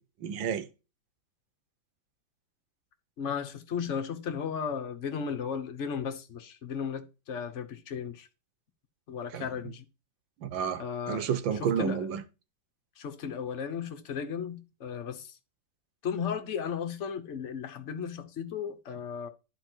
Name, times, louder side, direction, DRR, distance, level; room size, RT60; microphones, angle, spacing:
voice 1, 0.2-0.7 9.3-9.4 10.4-12.2, right 7 dB, 85° right, 1.7 m, -30 dB
voice 2, 3.2-8.3 9.1-9.8 10.8-11.3 11.6-12.1 13.0-15.3 16.0-19.3, left 7 dB, 45° left, 1.2 m, -35 dB
11.0 x 4.6 x 4.5 m
omnidirectional pair, 2.0 m